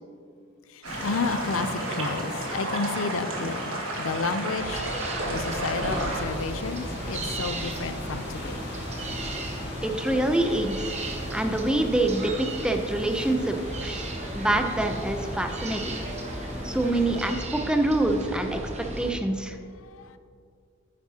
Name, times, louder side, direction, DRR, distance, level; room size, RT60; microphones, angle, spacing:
voice 1, 0.7-8.7 19.6-20.2, left 4 dB, 85° left, 10 dB, 0.5 m, -32 dB
sound 1, 0.8-17.3, left 1 dB, 55° left, 1.6 m, -39 dB
sound 2, 0.8-6.2, right 1 dB, 85° right, 1.6 m, -32 dB
sound 3, 4.6-19.1, right 1 dB, 35° right, 1.0 m, -35 dB
voice 2, 9.8-10.9 11.3-12.3 12.6-14.0 14.3-16.0 16.6-18.6 19.0-19.6, right 1 dB, 5° right, 5 dB, 0.5 m, -25 dB
9.5 x 9.4 x 2.8 m, 2.3 s
head